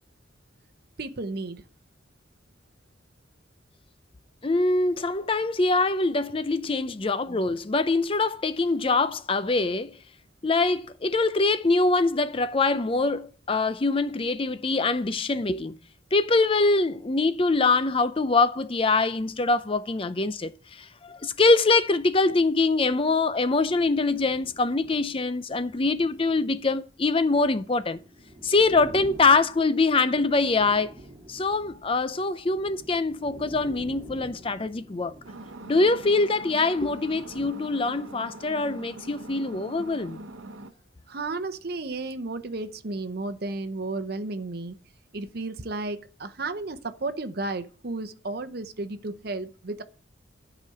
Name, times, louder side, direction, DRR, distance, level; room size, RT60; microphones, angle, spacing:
voice 1, 1.0-1.6 41.1-44.8 45.1-49.8, right 2 dB, 55° right, 0.8 m, -33 dB
voice 2, 4.4-10.0 10.4-15.8 16.1-28.0 28.4-30.9 31.3-35.1 35.7-40.2, left 3 dB, 30° left, 0.5 m, -24 dB
sound 1, 23.3-37.5, right 1 dB, 25° right, 2.3 m, -48 dB
sound 2, 35.2-40.7, right 2 dB, 80° right, 0.9 m, -42 dB
11.5 x 5.0 x 7.7 m
head